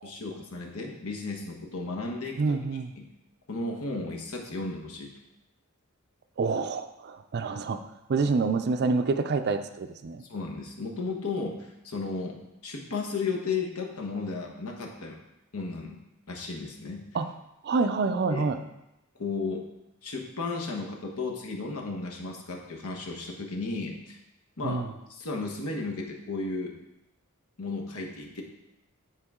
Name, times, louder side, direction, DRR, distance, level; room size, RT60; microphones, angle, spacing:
voice 1, 0.0-2.6 3.0-3.1 3.5-5.1 10.2-15.2 15.5-16.0 16.3-17.0 18.3-18.4 19.2-19.6 20.0-24.2 24.6-24.8 25.1-26.8 27.6-28.4, left 3 dB, 70° left, 0 dB, 1.2 m, -34 dB
voice 2, 2.4-2.9 6.4-7.8 8.1-10.2 17.1-17.3 17.6-18.6 24.6-24.9, right 4 dB, 45° right, 9 dB, 0.4 m, -27 dB
9.6 x 4.6 x 3.7 m, 0.91 s
head